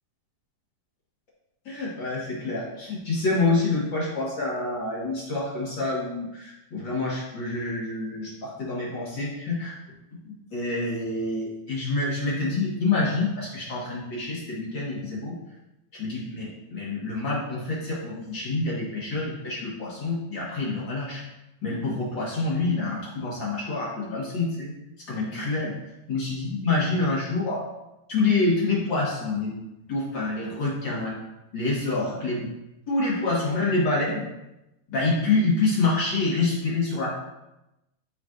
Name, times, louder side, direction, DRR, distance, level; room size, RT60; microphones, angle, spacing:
voice 1, 1.6-9.7 10.3-15.3 16.0-21.2 21.6-24.7 25.1-25.7 26.1-27.6 28.1-29.6 29.9-31.2 31.5-32.5 32.9-34.2 34.9-37.1, left 3 dB, 45° left, -6 dB, 1.7 m, -27 dB
12.5 x 4.5 x 2.6 m, 0.93 s
omnidirectional pair, 4.2 m